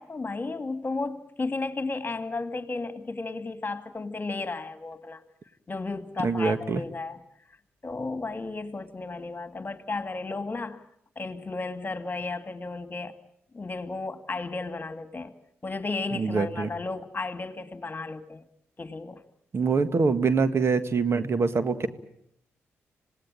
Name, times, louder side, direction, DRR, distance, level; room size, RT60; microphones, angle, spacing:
voice 1, 0.0-5.2 5.7-7.2 7.8-10.8 11.2-13.2 13.5-15.3 15.6-18.4 18.8-19.2, left 3 dB, 35° left, 9 dB, 2.2 m, -33 dB
voice 2, 6.2-6.8 16.1-16.7 19.5-21.9, right 4 dB, 50° right, 11 dB, 1.7 m, -24 dB
26.5 x 18.5 x 8.9 m, 0.74 s
supercardioid pair, 45°, 6 cm